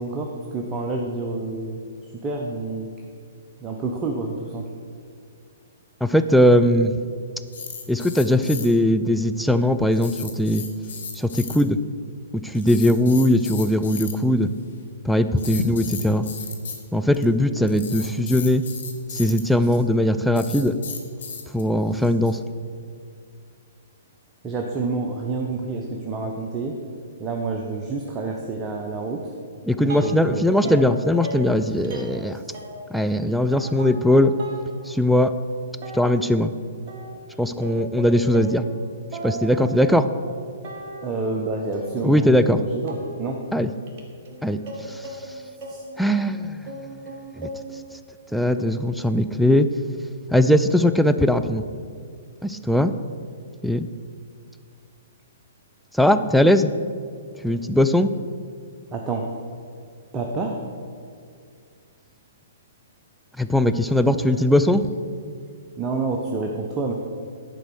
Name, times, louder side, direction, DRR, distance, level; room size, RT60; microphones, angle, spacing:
voice 1, 0.0-1.8 2.2-2.9 3.6-4.7 21.9-22.1 24.4-26.8 27.2-29.2 29.8-30.7 41.0-43.4 45.7-45.8 58.9-59.3 60.1-60.6 65.2-65.4 65.8-66.9, right 3 dB, 20° right, 1 dB, 0.8 m, -28 dB
voice 2, 6.0-6.9 7.9-10.6 11.1-11.8 12.3-14.5 15.0-16.2 16.9-18.6 19.1-20.7 21.5-22.4 29.7-32.4 32.9-34.3 34.9-35.3 35.9-36.5 37.4-38.6 39.2-40.1 42.0-42.6 43.5-43.7 44.4-44.6 44.9-45.1 46.0-46.7 47.4-47.5 48.3-49.7 50.3-51.6 52.4-52.9 53.6-53.9 55.9-56.7 57.4-58.1 63.4-64.8, left 1 dB, ahead, 10 dB, 0.4 m, -20 dB
sound 1, 7.5-8.7 9.9-11.6 12.5-14.1 15.4-16.8 17.1-17.2 17.7-19.4 20.3-21.6, left 6 dB, 65° left, 1.5 m, -34 dB
sound 2, 29.9-30.4 30.6-33.1 33.5-34.7 35.1-35.2 35.8-36.4 36.9-38.8 39.1-40.3 40.6-41.4 41.7-46.4 46.7-47.9, right 2 dB, 45° right, 1.8 m, -37 dB
10.5 x 5.0 x 6.4 m, 2.2 s
figure-of-eight pair, 120°, 0 cm